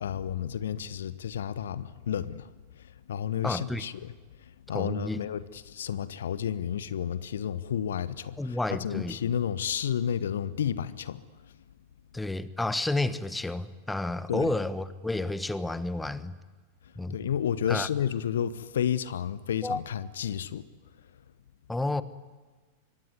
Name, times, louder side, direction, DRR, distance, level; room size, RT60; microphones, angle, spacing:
voice 1, 0.0-2.5 2.8-4.1 4.4-11.2 14.3-14.5 17.1-20.7, left 9 dB, 65° left, 1.0 m, -31 dB
voice 2, 3.4-3.8 4.7-5.2 8.4-9.2 12.1-16.3 16.9-17.2 17.6-17.9 19.6-19.8 21.7-22.0, left 2 dB, 5° left, 1.2 m, -30 dB
26.0 x 23.5 x 9.5 m
figure-of-eight pair, 90°, 0 cm